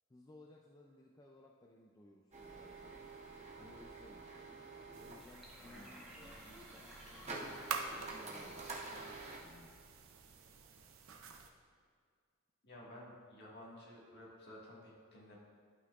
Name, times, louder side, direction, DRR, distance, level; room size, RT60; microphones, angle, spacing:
voice 1, 0.1-3.0 3.5-4.3 5.0-9.8, left 1 dB, 15° left, -1 dB, 0.3 m, -60 dB
sound 1, 2.3-9.4, right 3 dB, 30° right, 0.9 m, -49 dB
sound 2, 4.9-11.5, right 5 dB, 65° right, 0.6 m, -48 dB
Sink (filling or washing), 5.2-10.1, equal, ahead, 1.0 m, -57 dB
voice 2, 12.6-15.4, left 1 dB, 50° left, -5 dB, 1.6 m, -54 dB
11.0 x 5.8 x 2.4 m, 2.1 s
head